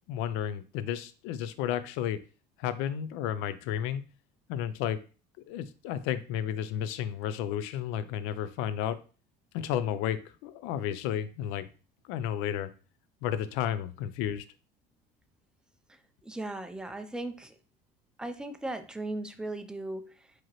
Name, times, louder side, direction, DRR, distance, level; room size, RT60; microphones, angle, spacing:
voice 1, 0.1-2.2 2.6-4.0 4.5-5.0 5.5-9.0 9.5-11.7 12.1-12.7 13.2-14.4, left 10 dB, 80° left, 13 dB, 0.5 m, -32 dB
voice 2, 16.2-17.6 18.2-20.3, right 2 dB, 5° right, 8 dB, 0.4 m, -37 dB
4.7 x 3.0 x 2.9 m, 0.36 s
supercardioid pair, 105°, 21 cm